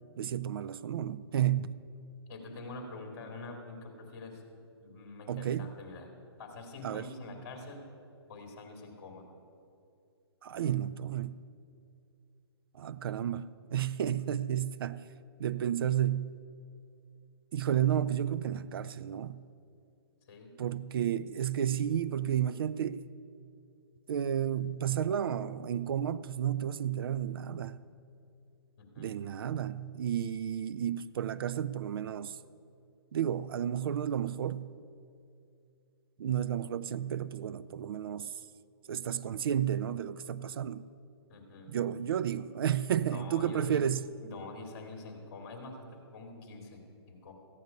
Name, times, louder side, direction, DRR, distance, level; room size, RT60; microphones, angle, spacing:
voice 1, 0.2-1.8 5.3-5.7 6.8-7.1 10.4-11.4 12.7-15.0 15.4-16.3 17.5-19.4 20.6-23.0 24.1-27.8 29.0-32.4 33.1-34.7 36.2-38.3 38.9-40.8 41.7-44.0, right 10 dB, 60° right, 0.5 m, -32 dB
voice 2, 2.3-6.1 6.4-7.8 8.3-9.3 20.2-20.6 28.8-29.1 41.3-41.7 43.1-43.8 44.2-47.3, left 3 dB, 40° left, 2.4 m, -46 dB
14.5 x 9.6 x 5.2 m
hypercardioid pair, 155°, 14 cm